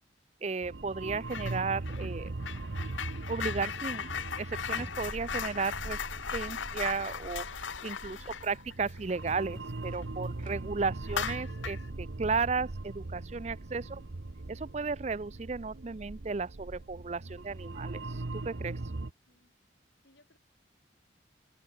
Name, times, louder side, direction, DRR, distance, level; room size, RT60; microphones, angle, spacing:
voice 1, 0.4-2.3 3.3-6.0 6.3-14.0 14.5-18.8, right 4 dB, 35° right, 0.5 m, -34 dB
sound 1, 0.6-19.1, right 2 dB, 70° right, 0.9 m, -40 dB
sound 2, 1.3-1.6 1.9-10.0 10.4-10.5 11.0-11.9, left 7 dB, 80° left, 0.9 m, -38 dB
Car, 4.7-8.0 8.4-9.8 10.2-10.3 10.9-11.0, equal, 5° left, 3.0 m, -55 dB
voice 2, 8.1-8.5 13.8-14.1 19.2-19.5 20.0-20.4, left 1 dB, 60° left, 5.5 m, -65 dB
head